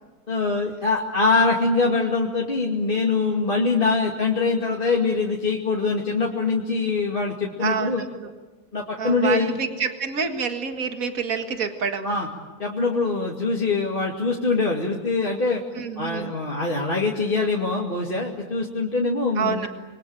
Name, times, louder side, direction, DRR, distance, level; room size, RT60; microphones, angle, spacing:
voice 1, 0.3-8.0 8.7-9.6 12.0-12.3 12.6-15.6 16.0-19.7, left 3 dB, 35° left, -3 dB, 2.7 m, -23 dB
voice 2, 7.6-8.3 9.0-12.2 15.7-16.3 19.4-19.7, right 6 dB, 65° right, 5 dB, 2.2 m, -27 dB
28.0 x 22.5 x 9.0 m, 1.3 s
omnidirectional pair, 1.6 m